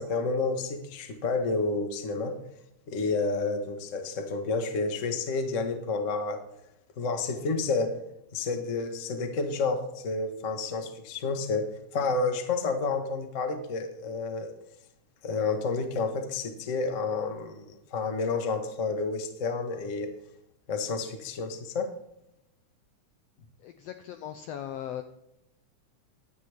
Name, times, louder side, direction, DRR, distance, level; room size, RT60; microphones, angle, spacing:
voice 1, 0.0-2.4 2.9-6.4 7.0-8.0 8.3-14.5 15.2-20.1 20.7-21.9, left 4 dB, 75° left, 6 dB, 0.7 m, -30 dB
voice 2, 23.6-25.0, left 10 dB, 90° left, 8 dB, 1.4 m, -38 dB
15.5 x 10.5 x 3.4 m, 0.83 s
omnidirectional pair, 3.6 m